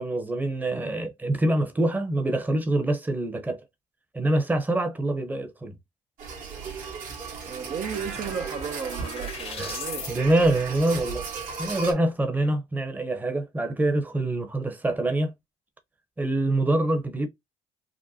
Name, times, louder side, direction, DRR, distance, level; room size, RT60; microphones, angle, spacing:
voice 1, 0.0-3.6 4.1-5.7 9.6-9.7 10.1-11.2 11.6-15.3 16.2-17.3, right 1 dB, 10° right, 0.8 m, -25 dB
sound 1, 6.2-11.9, right 5 dB, 70° right, 2.0 m, -35 dB
sound 2, 7.3-7.4 7.6-10.1, left 7 dB, 45° left, 0.7 m, -40 dB
voice 2, 7.5-10.2, right 7 dB, 55° right, 0.7 m, -34 dB
5.0 x 2.1 x 2.8 m
cardioid pair, 110°, 14 cm